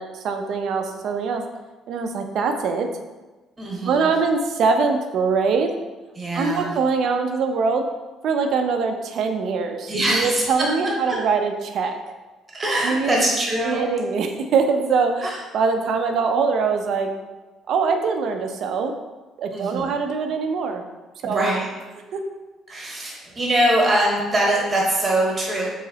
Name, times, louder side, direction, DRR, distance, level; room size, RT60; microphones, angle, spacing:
voice 1, 0.0-1.4 1.9-2.9 3.8-5.7 6.3-7.8 8.2-12.0 12.8-13.2 13.6-15.3 15.5-17.1 17.7-18.9 19.4-20.8 21.2-21.5 22.1-22.2, right 5 dB, 60° right, 5 dB, 0.4 m, -23 dB
voice 2, 3.6-4.1 6.2-6.7 9.9-11.2 12.5-13.9 15.2-15.4 19.5-19.9 21.2-21.7 22.7-25.7, right 1 dB, 25° right, -2 dB, 1.0 m, -23 dB
3.9 x 3.1 x 2.7 m, 1.2 s
cardioid pair, 130°, 0 cm